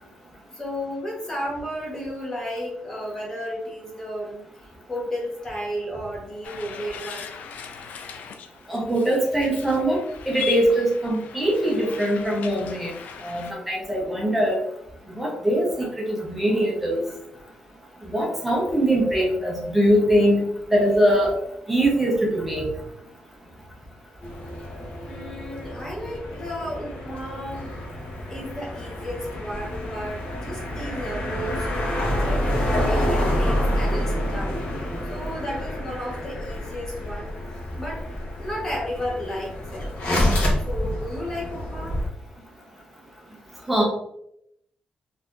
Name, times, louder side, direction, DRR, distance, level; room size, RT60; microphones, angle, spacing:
voice 1, 0.5-4.4 4.9-7.4 25.1-27.7 28.3-31.7 32.1-34.6 35.1-37.4 37.8-38.0 38.4-39.9 40.6-42.0, equal, 20° left, -3 dB, 1.0 m, -33 dB
sound 1, 6.4-13.5, left 8 dB, 80° left, 0.4 m, -39 dB
voice 2, 8.7-12.9 13.2-14.6 15.1-17.0 18.1-20.4 20.7-21.4 21.7-22.7 43.7-43.8, right 1 dB, 5° right, -3 dB, 0.8 m, -22 dB
sound 2, 24.2-42.1, left 1 dB, 60° left, 1.0 m, -28 dB
4.0 x 2.7 x 2.5 m, 0.76 s
wide cardioid pair, 175°, 3 cm